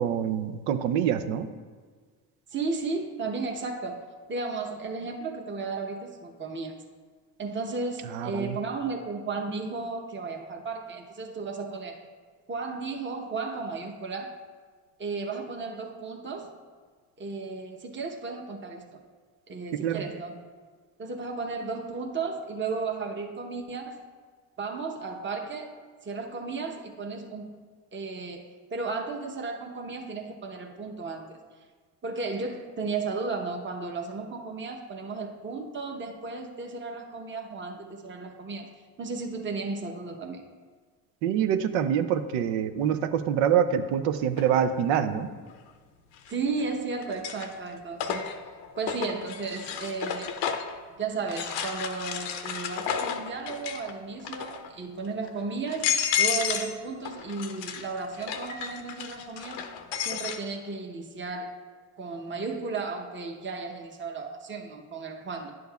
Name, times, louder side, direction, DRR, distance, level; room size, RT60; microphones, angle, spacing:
voice 1, 0.0-1.5 8.1-8.6 19.7-20.1 41.2-45.3, right 9 dB, 85° right, 10 dB, 0.6 m, -25 dB
voice 2, 2.5-6.8 7.4-12.0 12.5-14.3 15.0-16.5 17.2-18.8 19.5-20.4 21.0-24.1 24.6-27.6 27.9-31.4 32.0-38.7 39.0-40.4 46.3-48.4 48.8-50.4 51.0-59.7 60.0-61.5 62.0-65.5, right 4 dB, 25° right, 2 dB, 0.9 m, -34 dB
sound 1, 44.4-44.5 46.2-46.6 47.0-50.8 51.3-53.9 54.2-54.7 55.2-55.3 55.7-56.8 57.0-60.4, left 8 dB, 80° left, 0.7 m, -32 dB
10.5 x 6.3 x 2.3 m, 1.5 s
supercardioid pair, 60°, 44 cm